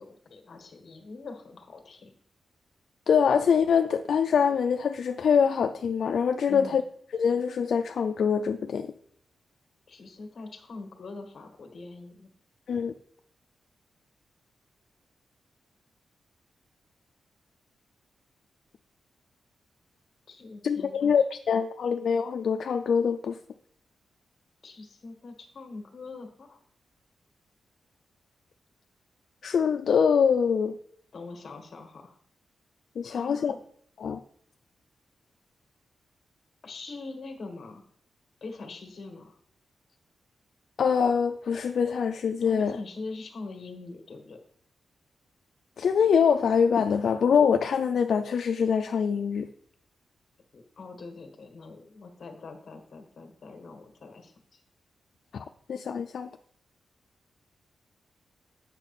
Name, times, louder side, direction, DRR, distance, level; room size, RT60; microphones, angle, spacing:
voice 1, 0.0-2.1 6.5-6.8 9.9-12.3 20.3-21.1 24.6-26.6 31.1-32.2 33.0-33.6 36.6-37.8 38.4-39.4 42.4-44.4 50.5-54.3, left 3 dB, 50° left, 1.5 m, -43 dB
voice 2, 3.1-6.8 7.1-8.9 12.7-12.9 20.6-23.4 29.4-30.7 33.0-33.6 34.0-34.2 40.8-42.8 45.8-49.5 55.3-56.3, left 6 dB, 65° left, 0.4 m, -24 dB
8.9 x 5.7 x 4.2 m
wide cardioid pair, 135°, 0 cm